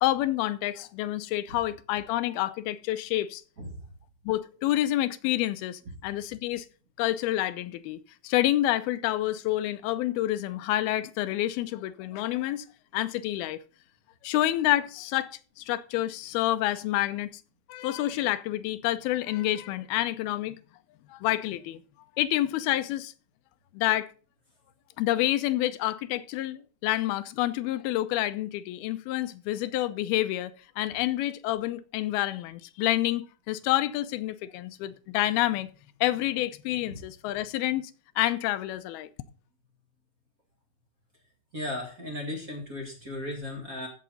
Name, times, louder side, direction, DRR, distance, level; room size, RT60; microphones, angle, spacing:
voice 1, 0.0-3.4 4.3-6.7 7.0-12.6 12.9-13.6 14.2-15.3 15.6-17.4 17.7-20.6 21.1-21.8 22.2-23.1 23.7-24.1 25.0-35.7 36.0-37.9 38.2-39.1, left 14 dB, 85° left, 2.6 m, -28 dB
voice 2, 41.5-43.9, left 1 dB, 30° right, 2.0 m, -36 dB
14.5 x 6.7 x 4.0 m
omnidirectional pair, 4.3 m